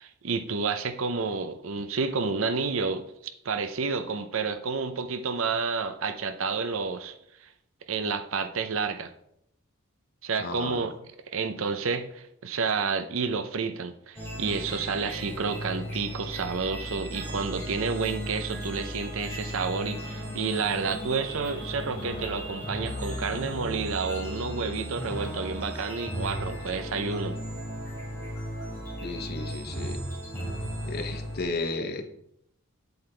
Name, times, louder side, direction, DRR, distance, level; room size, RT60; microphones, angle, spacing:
voice 1, 0.0-3.1 3.4-7.2 7.4-7.5 7.9-9.1 10.2-10.9 11.3-27.4, right 4 dB, 70° right, 9 dB, 0.6 m, -30 dB
voice 2, 10.4-10.8 29.0-30.0 30.8-32.0, left 3 dB, 45° left, 6 dB, 0.8 m, -33 dB
sound 1, 14.2-31.4, equal, 10° left, 3.3 m, -36 dB
7.9 x 7.9 x 3.3 m, 0.75 s
head